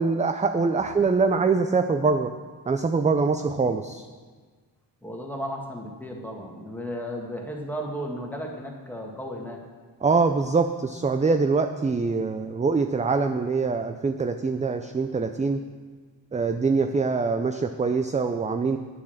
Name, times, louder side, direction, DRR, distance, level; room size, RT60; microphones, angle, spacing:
voice 1, 0.0-2.3 2.7-4.0 10.0-15.6 16.3-18.8, right 4 dB, 20° right, 7 dB, 0.3 m, -24 dB
voice 2, 5.0-9.6, equal, 5° left, 0 dB, 1.7 m, -34 dB
9.6 x 7.3 x 6.4 m, 1.4 s
wide cardioid pair, 100°, 45 cm